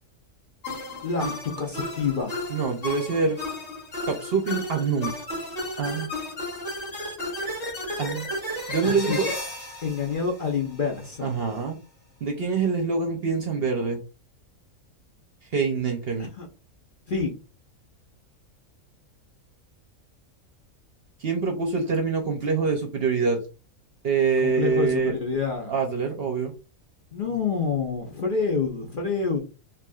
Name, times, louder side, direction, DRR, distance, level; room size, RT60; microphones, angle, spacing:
sound 1, 0.6-11.0, left 1 dB, 60° left, 2.5 m, -33 dB
voice 1, 1.0-2.4 8.8-9.2 9.8-11.3 16.4-16.5 17.1-17.3 24.4-25.7 27.1-29.4, left 5 dB, 45° left, 0.8 m, -27 dB
voice 2, 2.5-3.4 4.0-5.1 5.8-6.1 8.0-8.3 8.7-9.3 11.2-11.8 12.2-14.0 15.5-16.3 21.2-23.4 24.0-25.1 25.7-26.5, right 5 dB, 55° right, 0.8 m, -25 dB
4.5 x 2.9 x 2.3 m
omnidirectional pair, 1.5 m